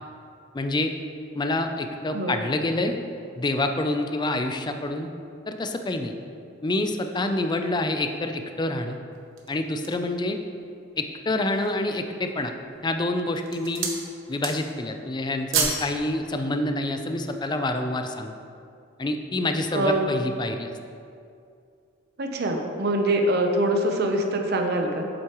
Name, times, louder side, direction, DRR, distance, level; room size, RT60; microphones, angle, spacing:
voice 1, 0.5-0.9 1.3-3.0 3.4-5.1 5.5-6.1 6.6-9.0 9.5-10.4 11.0-12.5 12.8-13.9 14.3-18.3 19.0-20.7, left 2 dB, 20° left, 6 dB, 0.4 m, -27 dB
sound 1, 9.1-10.1 10.7-10.8 11.3-11.9 12.6-12.9 13.3-14.0 14.3-14.8 15.1-15.9 16.2-16.4, right 5 dB, 75° right, 1.0 m, -29 dB
voice 2, 22.2-25.1, right 1 dB, 50° right, 3 dB, 0.7 m, -24 dB
8.2 x 7.7 x 3.0 m, 2.5 s
head